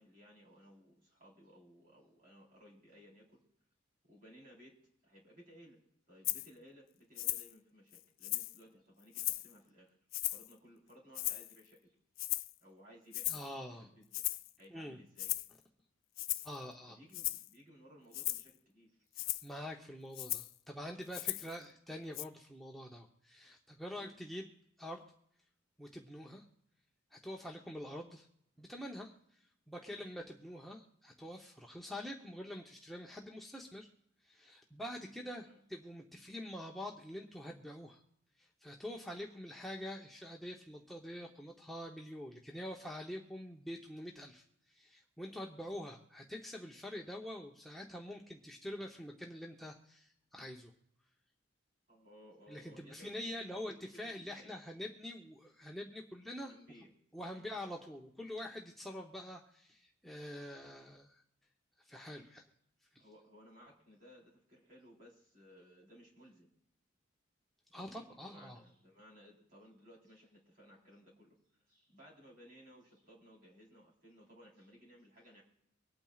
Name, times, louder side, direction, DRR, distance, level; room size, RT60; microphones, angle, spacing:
voice 1, 0.0-3.4 4.0-4.7 5.0-5.8 6.1-10.0 10.3-12.0 12.6-14.1 14.6-15.3 16.9-19.0 21.3-21.4 23.9-24.1 27.3-27.5 29.9-30.1 35.4-35.6 51.9-53.1 53.4-54.5 56.4-56.9 57.3-57.5 63.0-66.5 67.7-71.4 71.7-75.4, equal, 45° right, -3 dB, 3.9 m, -60 dB
Rattle (instrument), 6.2-6.5 7.2-7.5 7.9-8.6 9.1-9.5 10.1-10.5 11.1-11.6 12.2-12.5 13.1-13.5 14.1-14.5 15.2-15.5 16.2-16.6 17.1-17.5 18.1-18.5 19.1-19.5 20.1-20.5 21.1-21.5 22.1-22.2, left 16 dB, 80° left, 0.5 m, -37 dB
voice 2, 13.3-13.9 14.7-15.0 16.4-17.0 19.1-24.5 24.8-25.0 25.8-26.4 27.1-28.3 28.6-33.9 34.2-38.0 38.4-50.7 52.5-56.5 57.1-61.2 61.8-62.4 62.9-63.0 67.7-68.6, left 1 dB, ahead, -1 dB, 0.8 m, -46 dB
25.0 x 8.8 x 2.4 m, 0.75 s
head